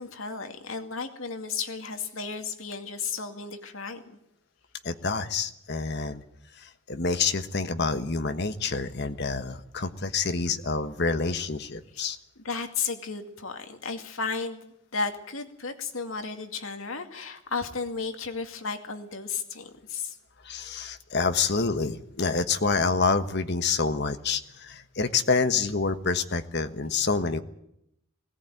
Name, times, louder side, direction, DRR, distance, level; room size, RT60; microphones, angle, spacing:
voice 1, 0.0-4.2 12.4-20.2, left 5 dB, 80° left, 6 dB, 2.3 m, -34 dB
voice 2, 4.8-6.2 6.6-12.2 20.4-27.4, left 4 dB, 55° left, 9 dB, 1.3 m, -27 dB
20.0 x 17.5 x 9.2 m, 0.80 s
head